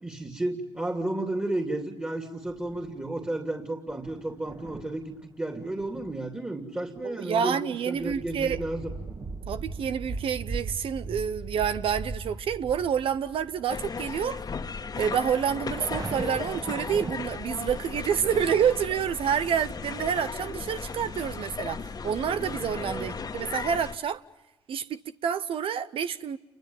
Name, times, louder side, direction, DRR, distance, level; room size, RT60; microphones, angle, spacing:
voice 1, 0.0-8.9 22.8-23.1, right 1 dB, 15° right, 2.9 m, -32 dB
sound 1, 2.5-3.1 3.9-5.2 5.6-6.2 6.7-7.0 7.4-7.6 7.9-14.0 14.2-14.3 15.4-17.2, right 3 dB, 35° right, 2.3 m, -38 dB
voice 2, 7.0-8.6 9.5-14.4 15.0-24.2 24.7-26.4, right 8 dB, 65° right, 0.9 m, -28 dB
sound 2, 13.7-24.0, left 5 dB, 40° left, 1.6 m, -36 dB
29.0 x 23.5 x 7.2 m
supercardioid pair, 60°, 10 cm